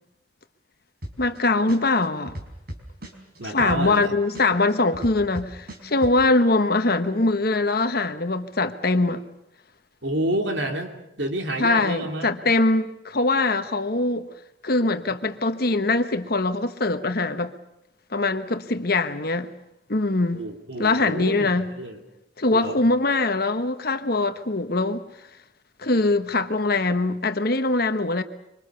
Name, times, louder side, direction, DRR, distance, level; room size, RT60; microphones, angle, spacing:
sound 1, 1.0-1.4 1.7-4.0 4.3-6.1, equal, 50° right, 4.7 m, -36 dB
voice 1, 1.2-2.4 3.4-9.2 11.6-14.3 14.6-17.5 18.1-19.5 19.9-20.4 20.8-21.7 22.4-25.0 25.8-28.2, left 2 dB, 50° left, 1.2 m, -22 dB
voice 2, 3.4-4.2 10.0-12.3 20.3-22.0 22.5-22.8, right 1 dB, 65° right, 3.1 m, -29 dB
25.5 x 25.0 x 7.0 m
head